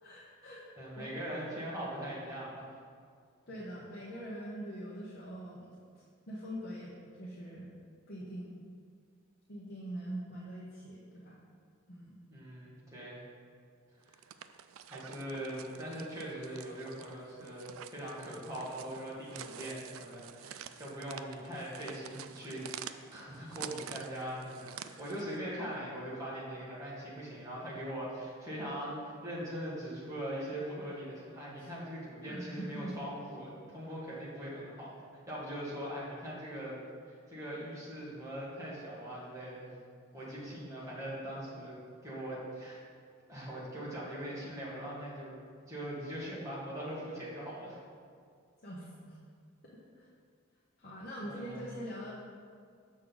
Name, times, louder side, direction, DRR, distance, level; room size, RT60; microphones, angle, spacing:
voice 1, 0.0-0.6 1.0-1.1 3.5-7.7 8.1-8.5 9.5-11.4 11.9-12.2 31.6-31.7 32.3-32.9 48.6-49.2 49.6-50.1 50.8-52.1, equal, 45° left, -7 dB, 1.0 m, -43 dB
voice 2, 0.8-2.6 12.3-13.2 14.0-14.3 14.8-34.9 35.3-36.8 37.1-39.7 40.1-41.8 42.0-42.8 43.3-45.3 45.6-47.8 51.2-51.7, equal, 15° right, -8 dB, 1.8 m, -41 dB
sound 1, 14.0-25.4, right 10 dB, 80° right, 0.3 m, -48 dB
6.5 x 6.3 x 3.9 m, 2.2 s
head